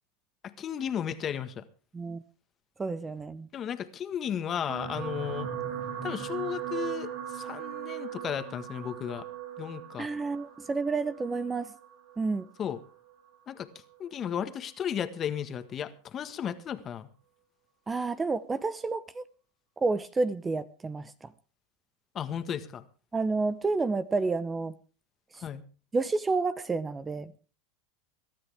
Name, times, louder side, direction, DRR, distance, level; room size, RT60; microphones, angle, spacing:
voice 1, 0.4-1.6 3.5-5.5 6.0-9.3 9.6-10.1 12.6-12.8 13.5-13.7 14.0-17.1 22.1-22.8 25.4-25.6, left 9 dB, 30° left, 1.5 m, -34 dB
voice 2, 2.8-3.5 10.0-11.7 12.2-12.5 17.9-19.2 19.8-21.3 23.1-24.8 25.3-25.4 25.9-27.3, right 3 dB, 15° right, 0.7 m, -30 dB
sound 1, 4.7-13.1 13.9-14.1 14.4-14.5, right 9 dB, 65° right, 3.8 m, -39 dB
22.5 x 12.5 x 3.5 m
supercardioid pair, 115°, 0 cm